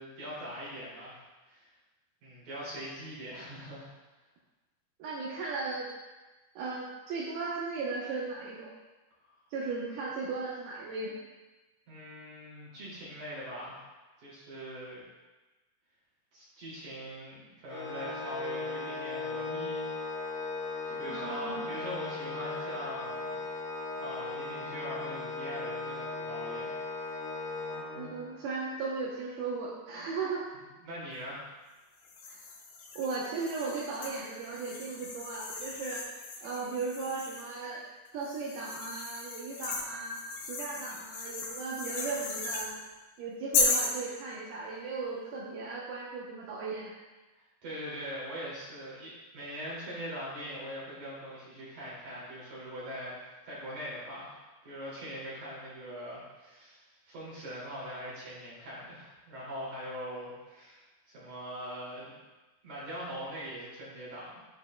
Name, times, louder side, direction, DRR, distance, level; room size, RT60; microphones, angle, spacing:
voice 1, 0.0-1.7 2.2-3.9 11.9-13.8 14.2-15.0 16.3-19.9 20.9-23.3 24.0-26.7 30.8-31.4 47.6-54.4 54.6-56.8 57.1-62.1 62.6-64.4, equal, 55° right, -8 dB, 3.9 m, -42 dB
voice 2, 5.0-5.9 6.6-8.7 9.5-11.2 21.1-21.7 27.9-30.5 32.3-32.5 33.0-36.1 36.4-37.8 38.1-40.2 40.5-42.8 43.2-46.9, right 4 dB, 80° right, -5 dB, 2.7 m, -36 dB
Organ, 17.7-28.5, left 3 dB, 55° left, 3.4 m, -37 dB
sound 1, 32.0-37.6 38.2-42.7 43.5-44.0, left 3 dB, 85° left, 3.2 m, -36 dB
14.5 x 5.3 x 2.3 m, 1.2 s
omnidirectional pair, 4.4 m